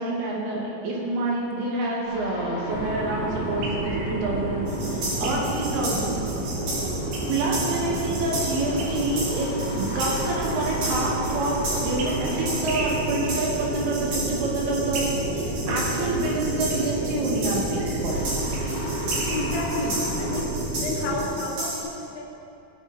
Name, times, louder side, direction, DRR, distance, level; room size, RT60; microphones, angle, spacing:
voice 1, 0.0-6.2 7.3-15.1 15.4-18.3, right 2 dB, 70° right, -3 dB, 3.3 m, -27 dB
sound 1, 2.0-20.4, left 1 dB, 35° left, 1.3 m, -37 dB
sound 2, 2.7-21.3, right 2 dB, 85° right, 3.7 m, -30 dB
sound 3, 4.7-21.8, right 2 dB, 50° right, 3.9 m, -34 dB
voice 2, 19.3-20.5 20.8-22.4, left 2 dB, 80° left, 0 dB, 3.4 m, -31 dB
16.0 x 6.9 x 4.3 m, 2.7 s
omnidirectional pair, 5.1 m